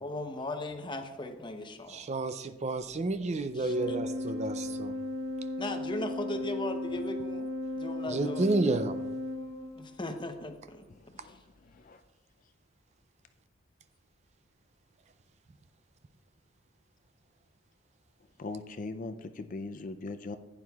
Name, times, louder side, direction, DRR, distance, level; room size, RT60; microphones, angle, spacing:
voice 1, 0.0-2.1 3.5-4.0 4.2-4.4 5.6-7.5 7.8-8.5 9.8-10.8 11.2-11.4, left 2 dB, 25° left, 6 dB, 0.8 m, -38 dB
voice 2, 1.9-4.9 8.1-9.0, right 2 dB, 35° right, 11 dB, 0.4 m, -30 dB
Organ, 3.6-10.2, left 1 dB, 90° right, 0.9 m, -36 dB
voice 3, 11.0-12.0 18.4-20.4, left 3 dB, 40° left, 9 dB, 0.4 m, -40 dB
15.0 x 9.4 x 2.3 m, 1.1 s
head